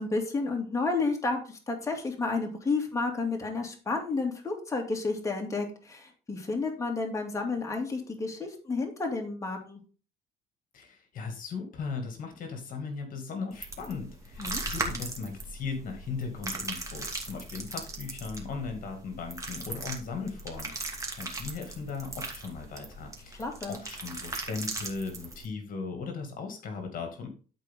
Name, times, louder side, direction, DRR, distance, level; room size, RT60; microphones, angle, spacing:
voice 1, 0.0-9.8 14.4-14.6 23.4-23.8, left 3 dB, 20° left, 1 dB, 2.5 m, -31 dB
voice 2, 10.7-27.3, left 4 dB, 55° left, 5 dB, 2.3 m, -38 dB
sound 1, 13.5-25.5, right 2 dB, 20° right, 2.4 m, -38 dB
13.0 x 4.6 x 3.7 m, 0.36 s
cardioid pair, 110°, 17 cm